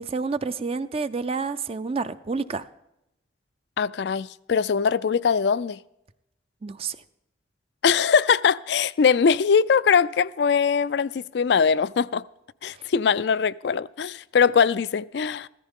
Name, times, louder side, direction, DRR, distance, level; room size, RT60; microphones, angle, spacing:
voice 1, 0.0-2.6 6.6-7.0, right 4 dB, 35° right, 0.4 m, -29 dB
voice 2, 3.8-5.8 7.8-12.2 12.6-15.5, left 6 dB, 65° left, 0.4 m, -21 dB
15.0 x 14.0 x 3.6 m
head